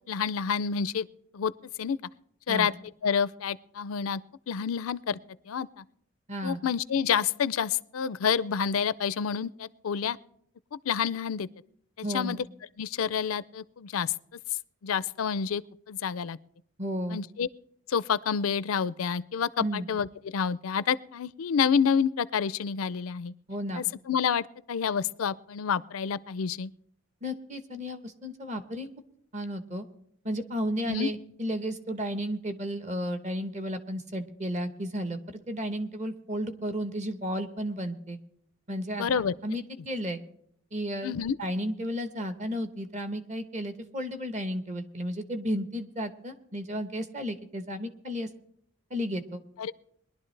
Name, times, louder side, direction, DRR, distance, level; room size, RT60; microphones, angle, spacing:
voice 1, 0.1-1.1 1.3-1.5 1.8-2.0 2.5-2.7 3.0-4.2 4.5-5.2 5.5-5.8 6.4-10.2 10.9-11.5 12.0-12.4 12.8-14.1 14.8-15.6 15.9-16.4 17.1-17.5 17.9-23.3 23.7-26.7 30.8-31.1 39.0-39.3 41.0-41.4 49.6-49.7, left 7 dB, 85° left, 18 dB, 0.4 m, -28 dB
voice 2, 6.3-6.6 12.0-12.4 16.8-17.2 19.6-19.9 23.5-23.8 27.2-28.9 29.3-29.9 30.2-38.2 38.7-39.1 39.4-40.2 40.7-41.1 41.4-48.3 48.9-49.4, equal, 35° right, 9 dB, 1.0 m, -33 dB
21.0 x 11.5 x 3.3 m, 0.68 s
head